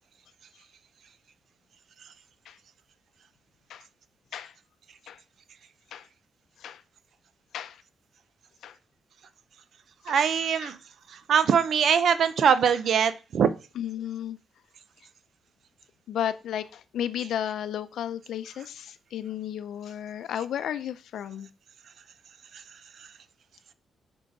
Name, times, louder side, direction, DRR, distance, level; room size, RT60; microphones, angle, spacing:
voice 1, 10.1-10.8 11.1-13.5, right 7 dB, 55° right, 0.6 m, -22 dB
voice 2, 13.8-14.4 16.1-21.5, left 10 dB, 75° left, 0.6 m, -33 dB
6.3 x 5.5 x 4.9 m
cardioid pair, 145°, 0 cm